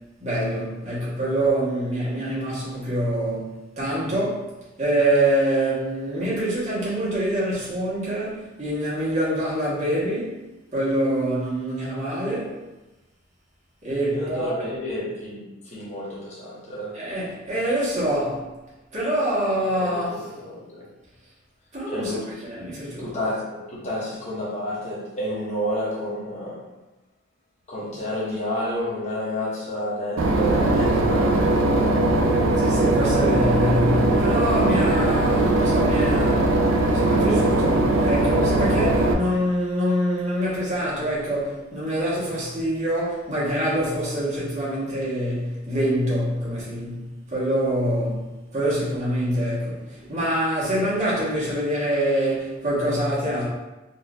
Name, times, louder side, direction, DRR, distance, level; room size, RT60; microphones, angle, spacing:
voice 1, 0.2-4.5 4.8-10.4 10.7-12.6 13.8-14.7 16.9-18.4 18.9-20.1 21.7-22.1 22.6-23.1 32.6-36.5 36.9-53.4, right 1 dB, 35° right, -8 dB, 1.3 m, -25 dB
voice 2, 14.1-17.0 19.7-20.9 21.9-22.3 23.0-26.7 27.7-32.0, left 1 dB, 35° left, -7 dB, 0.8 m, -30 dB
Boat Water vehicle / Engine, 30.2-39.1, right 2 dB, 85° right, 0.4 m, -20 dB
4.2 x 2.6 x 2.4 m, 1.0 s
head